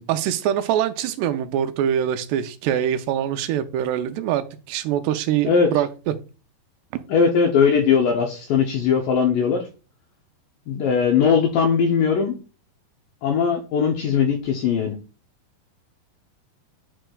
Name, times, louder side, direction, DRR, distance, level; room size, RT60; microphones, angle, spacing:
voice 1, 0.1-6.1 6.9-7.1, right 10 dB, 85° right, 9 dB, 2.7 m, -24 dB
voice 2, 7.1-9.6 10.7-12.3 13.2-14.9, left 6 dB, 75° left, 2 dB, 2.0 m, -19 dB
11.0 x 4.4 x 2.3 m, 0.34 s
omnidirectional pair, 4.7 m